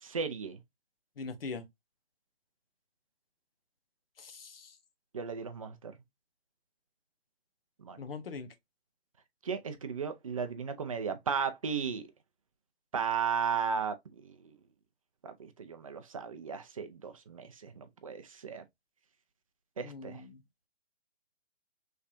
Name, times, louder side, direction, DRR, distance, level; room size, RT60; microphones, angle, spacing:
voice 1, 0.0-0.6 5.1-5.9 7.8-8.0 9.4-12.1 12.9-14.5 15.2-18.6 19.8-20.2, right 6 dB, 35° right, 0.5 m, -35 dB
voice 2, 1.2-1.6 4.2-4.7 8.0-8.5 19.8-20.4, left 4 dB, 60° left, 0.9 m, -42 dB
3.3 x 3.2 x 2.5 m
figure-of-eight pair, 145°, 32 cm